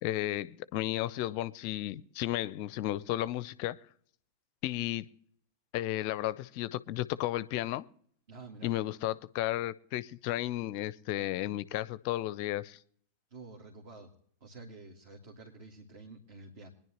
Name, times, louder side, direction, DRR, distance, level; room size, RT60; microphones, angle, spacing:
voice 1, 0.0-3.8 4.6-5.1 5.7-7.8 8.6-12.8, left 15 dB, 45° left, 0.5 m, -33 dB
voice 2, 8.3-8.7 13.3-14.1 14.4-16.7, right 3 dB, 50° right, 2.1 m, -49 dB
24.0 x 10.5 x 2.9 m
figure-of-eight pair, 90°, 0 cm